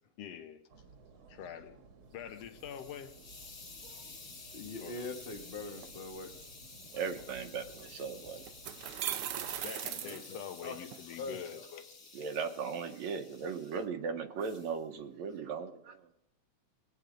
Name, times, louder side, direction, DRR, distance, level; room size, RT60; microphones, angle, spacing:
voice 1, 0.2-0.6 1.3-1.8 2.1-3.1 4.8-5.1 7.2-7.3 9.6-12.0, left 9 dB, 65° left, 2.0 m, -45 dB
sound 1, 0.7-9.7, right 4 dB, 50° right, 1.9 m, -57 dB
Hiss, 2.1-13.9 14.4-14.8, left 3 dB, 35° left, 2.8 m, -52 dB
voice 2, 4.5-6.3 10.0-10.8 11.2-11.7, left 3 dB, 85° left, 0.5 m, -43 dB
voice 3, 6.9-8.5 12.1-16.1, right 6 dB, 75° right, 2.2 m, -38 dB
sound 2, 7.8-7.9 8.5-11.0, right 11 dB, 90° right, 1.2 m, -38 dB
20.5 x 9.0 x 5.1 m
omnidirectional pair, 3.4 m